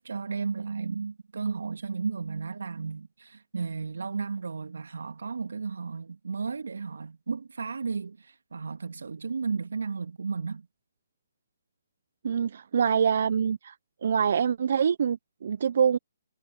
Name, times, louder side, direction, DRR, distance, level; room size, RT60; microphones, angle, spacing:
voice 1, 0.0-8.2 8.5-10.7, right 5 dB, 75° right, 2.3 m, -33 dB
voice 2, 12.2-13.7 14.0-16.0, right 7 dB, 60° right, 1.1 m, -25 dB
figure-of-eight pair, 140°, 0 cm